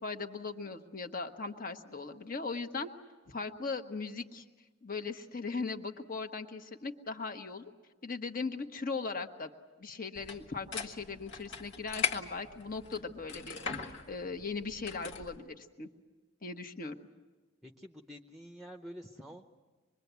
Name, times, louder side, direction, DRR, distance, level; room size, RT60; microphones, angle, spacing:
voice 1, 0.0-2.9 3.3-4.4 4.8-7.7 8.0-9.5 9.8-15.9 16.4-16.9, left 4 dB, 45° left, 6 dB, 1.3 m, -39 dB
sound 1, 10.1-15.4, left 6 dB, 60° left, 1.6 m, -40 dB
voice 2, 17.6-19.5, equal, ahead, 4 dB, 0.8 m, -48 dB
25.5 x 22.0 x 8.2 m, 1.3 s
head